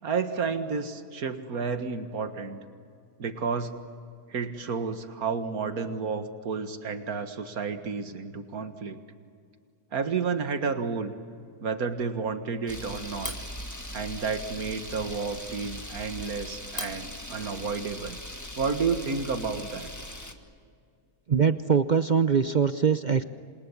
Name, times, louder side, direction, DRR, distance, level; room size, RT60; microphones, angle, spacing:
voice 1, 0.0-2.6 3.2-3.7 4.3-9.0 9.9-11.1 11.6-13.3 13.9-18.2 18.6-19.9, right 5 dB, 70° right, 8 dB, 2.1 m, -31 dB
Camera, 12.7-20.3, left 1 dB, 10° left, 1.6 m, -39 dB
voice 2, 21.3-23.2, right 6 dB, 45° right, 11 dB, 0.6 m, -22 dB
28.0 x 27.5 x 7.3 m, 2.4 s
omnidirectional pair, 1.6 m